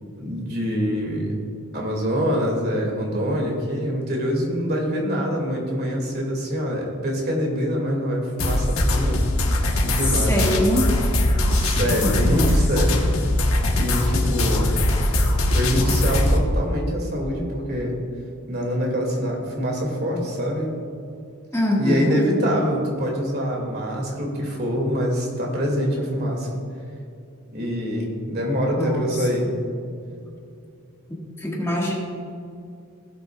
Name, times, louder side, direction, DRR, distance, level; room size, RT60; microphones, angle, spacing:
voice 1, 0.2-1.3 1.7-9.2 9.5-10.4 11.5-13.0 13.7-14.7 15.5-17.9 18.5-20.7 21.8-26.6 27.5-29.5, equal, 50° right, -1 dB, 2.2 m, -25 dB
sound 1, 8.4-16.4, left 1 dB, 85° left, 1.3 m, -21 dB
voice 2, 10.1-10.9 12.0-12.8 21.5-22.2 28.7-29.5 31.1-31.9, left 1 dB, 15° left, -4 dB, 1.7 m, -24 dB
17.5 x 8.1 x 2.3 m, 2.5 s
head